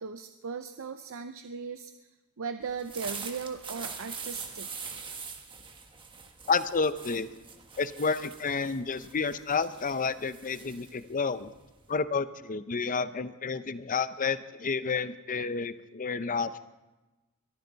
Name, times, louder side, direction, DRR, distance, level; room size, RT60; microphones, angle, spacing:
voice 1, 0.0-1.9 2.4-4.9, right 5 dB, 65° right, 8 dB, 0.6 m, -38 dB
sound 1, 2.7-12.0, right 5 dB, 20° right, 1.5 m, -43 dB
voice 2, 6.5-7.4 7.8-11.5 11.9-16.6, left 5 dB, 35° left, 13 dB, 0.6 m, -30 dB
22.5 x 14.0 x 4.0 m, 1.1 s
head